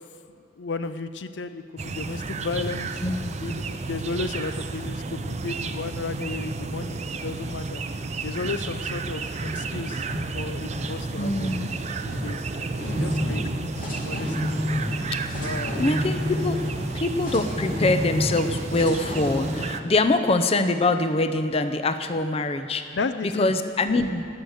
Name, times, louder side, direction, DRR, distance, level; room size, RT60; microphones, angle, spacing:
voice 1, 0.6-2.9 3.4-7.8 8.2-10.1 10.3-11.5 12.0-12.4 12.7-13.6 14.0-14.5 15.4-15.8 22.9-23.5, left 3 dB, 75° left, 11 dB, 0.5 m, -33 dB
sound 1, 1.8-19.8, right 3 dB, 40° right, 0.5 m, -32 dB
voice 2, 3.0-3.3 11.2-11.7 15.8-16.6 16.9-22.9 23.2-24.3, left 2 dB, 35° left, 9 dB, 0.6 m, -24 dB
sound 2, 9.1-19.9, left 1 dB, 50° left, 2.7 m, -31 dB
19.0 x 6.5 x 7.8 m, 2.3 s
head